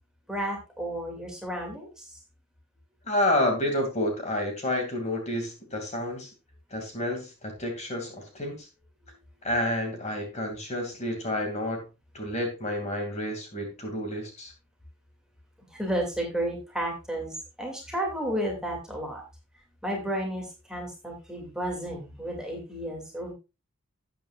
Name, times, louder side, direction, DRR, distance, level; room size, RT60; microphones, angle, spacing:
voice 1, 0.3-2.2 15.7-19.2 19.8-23.3, right 1 dB, 5° right, 0 dB, 2.5 m, -32 dB
voice 2, 3.0-6.3 6.7-8.7 9.4-11.8 12.1-14.5, left 1 dB, 30° left, 3 dB, 2.5 m, -29 dB
12.5 x 8.8 x 2.5 m, 0.27 s
head